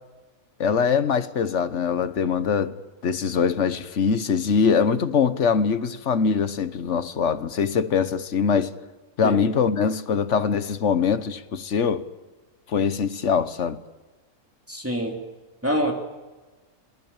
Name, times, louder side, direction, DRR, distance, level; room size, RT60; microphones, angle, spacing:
voice 1, 0.6-2.8 3.0-8.7 9.2-12.1 12.7-13.8, left 6 dB, 55° left, 1.4 m, -23 dB
voice 2, 14.7-15.2 15.6-15.9, equal, 10° right, 3.3 m, -25 dB
27.0 x 18.5 x 8.9 m
omnidirectional pair, 1.6 m